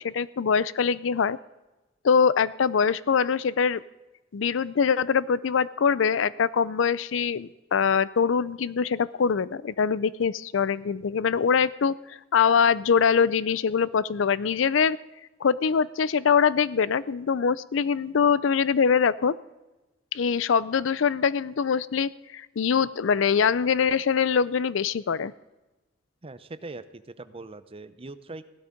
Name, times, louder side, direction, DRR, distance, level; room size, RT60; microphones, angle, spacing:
voice 1, 0.0-1.4 2.0-3.8 4.3-15.0 15.4-19.4 20.1-25.3, left 6 dB, 70° left, 19 dB, 0.5 m, -23 dB
voice 2, 26.2-28.5, right 2 dB, 30° right, 13 dB, 0.7 m, -41 dB
16.5 x 12.0 x 5.1 m, 1.1 s
head